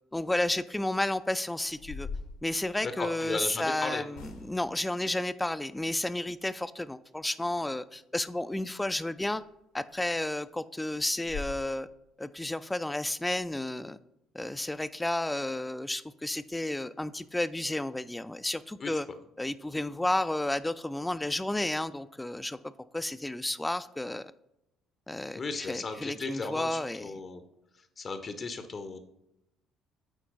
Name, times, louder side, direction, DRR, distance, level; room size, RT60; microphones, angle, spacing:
voice 1, 0.1-2.1 2.4-9.4 9.7-11.9 12.2-14.0 14.3-19.1 19.4-22.6 22.9-24.3 25.1-27.1, left 1 dB, 10° left, 14 dB, 0.4 m, -32 dB
sound 1, 1.1-1.2 1.6-3.4 4.1-4.8 9.3-9.4 9.9-10.0 10.4-10.5 10.8-10.9 11.2-11.6, left 4 dB, 70° left, 1.0 m, -42 dB
voice 2, 2.8-4.0 18.8-18.9 25.4-27.4 28.0-29.0, left 3 dB, 40° left, 9 dB, 0.7 m, -35 dB
8.4 x 4.4 x 4.0 m, 0.86 s
figure-of-eight pair, 50°, 0 cm